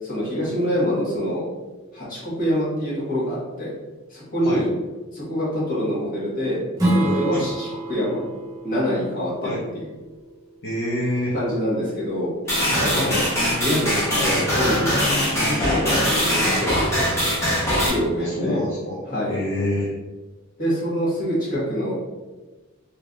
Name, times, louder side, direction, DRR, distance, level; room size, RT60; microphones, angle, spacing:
voice 1, 0.0-1.5 1.9-3.7 4.1-4.7 5.1-8.2 8.6-9.9 11.3-12.3 12.8-13.2 13.6-17.1 17.8-18.6 19.1-19.4 20.6-21.9, equal, 45° left, -8 dB, 1.5 m, -25 dB
Strum, 6.8-12.0, right 1 dB, 15° right, 0.7 m, -28 dB
voice 2, 10.6-11.3 12.9-13.2 18.2-19.0 19.3-19.9, left 1 dB, 60° left, -9 dB, 0.8 m, -26 dB
sound 1, 12.5-17.9, equal, 15° left, 1.0 m, -21 dB
3.3 x 3.0 x 2.5 m, 1.2 s
head